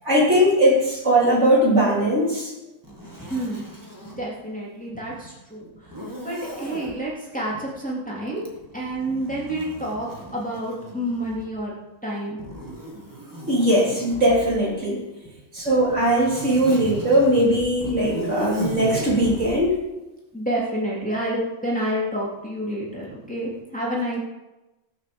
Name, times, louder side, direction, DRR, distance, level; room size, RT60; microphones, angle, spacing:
voice 1, 0.0-2.5 13.5-15.1 15.5-19.8, right 1 dB, 55° right, -4 dB, 4.1 m, -19 dB
Zipper (clothing), 2.8-4.2 5.9-7.0 8.4-11.6 12.4-14.7 15.6-19.6, right 1 dB, 15° right, 2.3 m, -36 dB
voice 2, 3.3-3.6 4.2-5.7 6.2-8.5 8.7-11.7 12.0-12.4 20.3-24.2, right 1 dB, 5° left, -5 dB, 3.3 m, -29 dB
18.0 x 6.7 x 7.1 m, 1.0 s
omnidirectional pair, 1.5 m